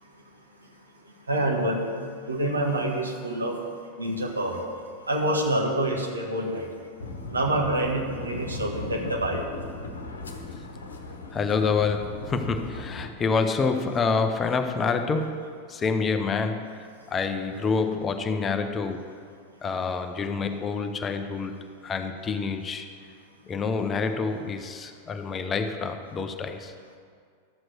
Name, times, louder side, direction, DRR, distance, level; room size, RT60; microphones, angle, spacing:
voice 1, 1.3-1.8 2.3-3.6 4.0-4.6 5.1-6.7 7.3-9.5, right 1 dB, 80° right, 0 dB, 1.7 m, -26 dB
sound 1, 7.0-13.1, left 3 dB, 70° left, 1.1 m, -37 dB
voice 2, 11.3-19.1 19.6-21.6 21.8-22.9 23.5-26.7, left 4 dB, 20° left, 7 dB, 0.8 m, -27 dB
12.5 x 7.9 x 6.2 m, 2.1 s
figure-of-eight pair, 90°, 0 cm